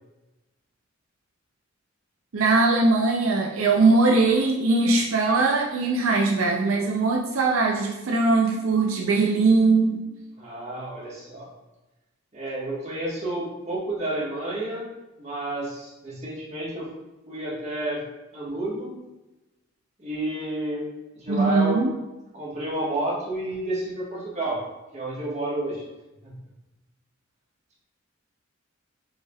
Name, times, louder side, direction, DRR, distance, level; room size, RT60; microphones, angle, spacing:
voice 1, 2.3-10.1 21.3-21.9, right 3 dB, 80° right, 0 dB, 0.5 m, -21 dB
voice 2, 10.4-11.5 12.3-14.8 15.2-16.9 17.3-18.0 18.3-18.9 20.0-20.8 21.1-21.8 22.3-24.6 24.9-25.8 26.2-26.3, right 1 dB, 35° right, -6 dB, 1.4 m, -30 dB
5.5 x 3.3 x 2.3 m, 1.0 s
head